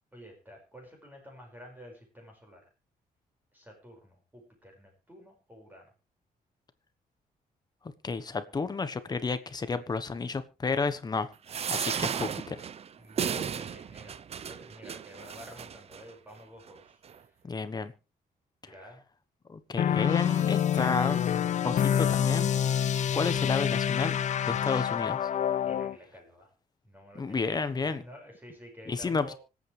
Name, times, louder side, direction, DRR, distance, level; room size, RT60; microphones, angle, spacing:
voice 1, 0.1-2.6 3.5-5.9 13.0-17.4 18.6-19.0 25.6-26.5 26.8-29.3, equal, 10° right, 1 dB, 5.6 m, -50 dB
voice 2, 8.0-11.3 11.7-12.6 17.4-17.9 18.6-18.7 19.5-21.3 21.6-22.5 23.1-24.2 24.5-25.3 27.1-28.0 28.9-29.3, left 4 dB, 25° left, 11 dB, 1.2 m, -31 dB
sound 1, 11.5-16.0 16.7-16.8 17.0-17.1, right 7 dB, 40° right, 0.6 m, -34 dB
sound 2, 19.8-26.0, left 9 dB, 50° left, 0.6 m, -27 dB
25.5 x 8.6 x 3.4 m, 0.31 s
wide cardioid pair, 155°, 16 cm